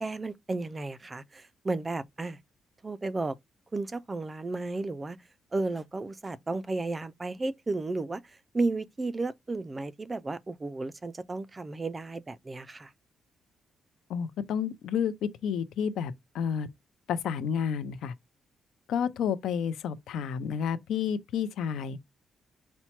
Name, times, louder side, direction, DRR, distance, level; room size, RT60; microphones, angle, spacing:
voice 1, 0.0-2.4 2.8-3.4 3.7-5.2 5.5-12.9, right 3 dB, 20° right, 0.3 m, -33 dB
voice 2, 14.1-16.7 17.1-18.1 18.9-22.0, left 7 dB, 85° left, 0.6 m, -30 dB
4.4 x 2.1 x 4.2 m
cardioid pair, 140°, 0 cm